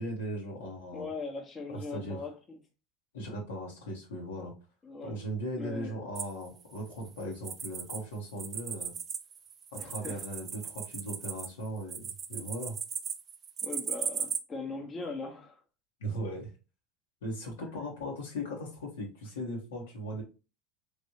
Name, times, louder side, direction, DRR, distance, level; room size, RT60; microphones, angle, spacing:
voice 1, 0.0-1.1 1.7-2.3 3.1-4.5 5.0-8.9 9.7-12.8 16.0-16.5 17.2-20.2, equal, 80° left, -1 dB, 1.2 m, -38 dB
voice 2, 0.9-2.6 4.8-5.2 5.5-5.9 9.8-10.2 13.6-15.6, left 3 dB, 30° left, 2 dB, 1.0 m, -40 dB
sound 1, 6.2-8.0 8.3-14.4, right 7 dB, 40° right, 0.4 m, -37 dB
3.2 x 2.6 x 2.8 m, 0.30 s
hypercardioid pair, 80°, 0 cm